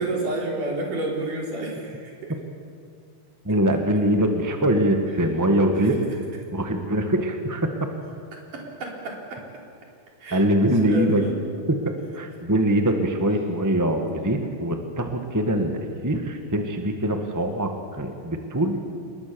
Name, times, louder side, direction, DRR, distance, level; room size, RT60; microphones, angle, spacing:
voice 1, 0.0-2.3 5.8-6.0 8.5-9.4 10.2-10.4 10.8-11.4, right 2 dB, 70° right, -1 dB, 5.5 m, -30 dB
voice 2, 3.4-5.9 6.5-7.7 10.3-11.2 11.7-11.8 12.1-18.8, right 1 dB, 10° right, 4 dB, 0.8 m, -23 dB
27.0 x 21.5 x 7.1 m, 2.3 s
omnidirectional pair, 3.8 m